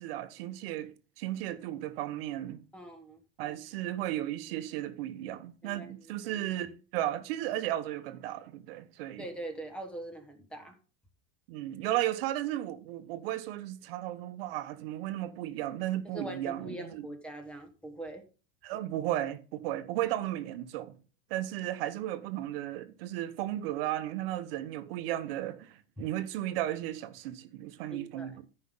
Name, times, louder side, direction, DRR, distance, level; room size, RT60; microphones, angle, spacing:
voice 1, 0.0-2.6 3.4-9.2 11.5-17.1 18.6-21.0 21.3-28.5, right 13 dB, 55° right, 1.2 m, -35 dB
voice 2, 2.7-3.2 5.6-5.9 9.2-10.8 16.1-18.2 27.9-28.4, right 1 dB, 5° left, 1.4 m, -42 dB
13.5 x 5.6 x 3.7 m
supercardioid pair, 165°, 35 cm